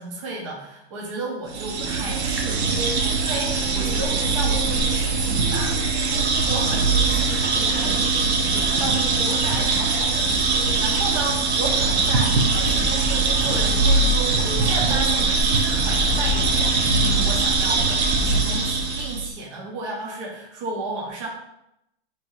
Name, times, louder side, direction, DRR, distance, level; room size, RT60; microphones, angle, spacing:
voice 1, 0.0-5.8 6.4-21.3, right 2 dB, 30° right, -2 dB, 0.6 m, -33 dB
sound 1, 1.5-19.3, right 3 dB, 75° right, 0.8 m, -21 dB
3.1 x 3.0 x 3.8 m, 0.82 s
hypercardioid pair, 170°, 34 cm